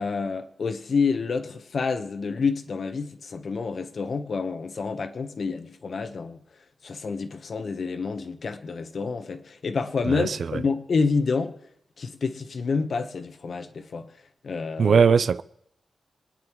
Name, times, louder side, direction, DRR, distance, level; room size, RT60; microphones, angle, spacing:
voice 1, 0.0-6.4 6.8-11.5 12.0-14.1 14.4-15.0, left 4 dB, 55° left, 1.0 m, -28 dB
voice 2, 10.0-10.6 14.8-15.4, right 6 dB, 60° right, 0.4 m, -20 dB
26.0 x 9.9 x 3.1 m
wide cardioid pair, 135°, 0 cm